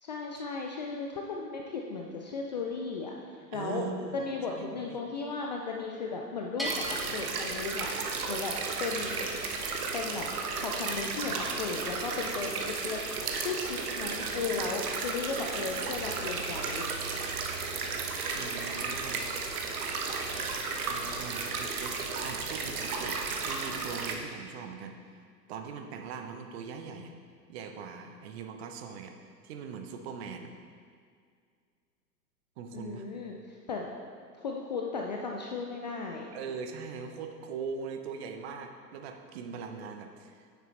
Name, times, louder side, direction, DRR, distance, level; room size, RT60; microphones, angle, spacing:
voice 1, 0.0-3.1 3.5-3.8 4.1-7.9 8.3-8.5 8.8-9.3 9.9-10.3 10.6-13.0 13.4-16.9 32.7-33.9 34.4-36.3, left 4 dB, 30° left, 0 dB, 0.4 m, -35 dB
voice 2, 3.5-4.2 4.5-5.0 18.3-19.2 20.9-25.0 25.5-27.1 27.5-30.5 32.6-33.1 36.3-40.5, right 5 dB, 40° right, 5 dB, 0.8 m, -41 dB
Bell, 6.6-8.3, equal, ahead, 0.8 m, -39 dB
sound 1, 6.6-24.2, right 4 dB, 60° right, 1.1 m, -34 dB
9.4 x 6.8 x 3.3 m, 2.1 s
figure-of-eight pair, 105°, 50 cm